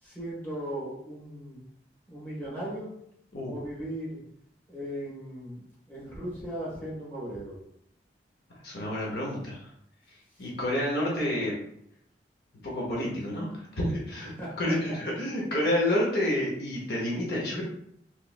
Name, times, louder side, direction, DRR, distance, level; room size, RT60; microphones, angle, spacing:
voice 1, 0.0-1.6 2.1-2.9 3.5-4.2 4.7-7.6 14.4-15.0, right 1 dB, 10° left, -7 dB, 1.2 m, -37 dB
voice 2, 8.5-9.7 10.1-11.6 12.6-17.6, left 1 dB, 60° left, -3 dB, 0.7 m, -29 dB
3.0 x 3.0 x 2.3 m, 0.71 s
head